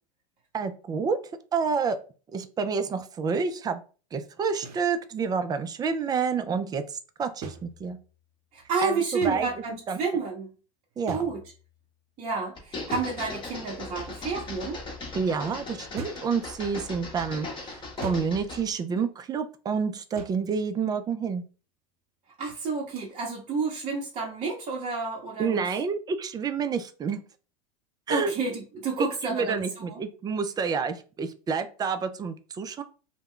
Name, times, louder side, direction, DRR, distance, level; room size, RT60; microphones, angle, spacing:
voice 1, 0.5-1.2 1.5-2.0 2.3-3.8 4.1-8.0 8.8-9.5 9.9-10.0 11.0-11.3 15.1-21.4 25.4-27.2 28.1-28.3 29.0-32.8, right 5 dB, 20° right, 10 dB, 0.3 m, -29 dB
sound 1, 4.6-4.9 7.4-8.2 9.2-9.8 11.1-11.8 12.9-13.8 16.0-16.4 18.0-18.5 20.2-20.6 23.0-23.1, right 4 dB, 80° right, 0.5 m, -41 dB
voice 2, 8.5-10.5 11.1-11.4 12.2-14.8 22.4-25.6 28.1-30.0, right 4 dB, 35° right, -3 dB, 0.7 m, -30 dB
sound 2, 12.6-18.7, left 3 dB, 25° left, 0.9 m, -38 dB
2.2 x 2.1 x 3.6 m, 0.36 s
hypercardioid pair, 95°, 19 cm